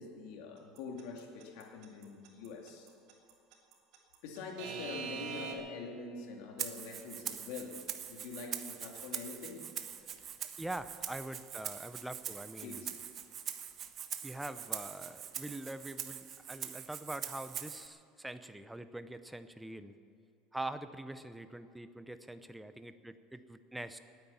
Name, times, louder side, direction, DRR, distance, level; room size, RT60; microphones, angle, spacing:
voice 1, 0.0-2.9 4.2-7.8 8.1-9.7 12.6-12.9, left 4 dB, 65° left, 1 dB, 2.6 m, -45 dB
Alarm / Clock, 0.8-5.5, right 7 dB, 55° right, 2.8 m, -42 dB
Rattle (instrument), 6.6-17.9, right 9 dB, 30° right, 0.9 m, -43 dB
voice 2, 10.6-12.8 14.2-20.0 20.5-24.0, right 1 dB, 5° right, 11 dB, 0.6 m, -44 dB
19.0 x 9.4 x 7.2 m, 2.6 s
cardioid pair, 160°, 0 cm